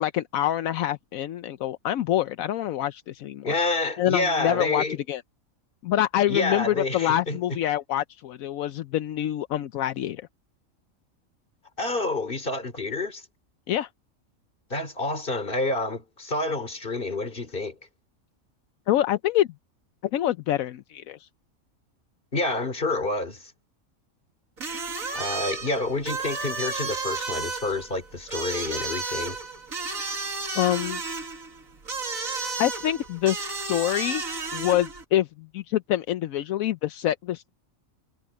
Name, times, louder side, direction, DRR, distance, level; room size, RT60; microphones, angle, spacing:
voice 1, 0.0-3.5 4.0-5.2 5.8-10.2 13.7-13.9 18.9-19.5 20.1-21.3 30.5-31.0 32.6-34.2 34.5-37.5, left 12 dB, 80° left, 1.1 m, -26 dB
voice 2, 3.4-5.0 6.3-7.4 11.8-13.2 14.7-17.8 22.3-23.5 25.1-29.4, left 2 dB, 40° left, 3.1 m, -28 dB
sound 1, 24.6-35.0, right 3 dB, 75° right, 2.7 m, -33 dB
omnidirectional pair, 1.4 m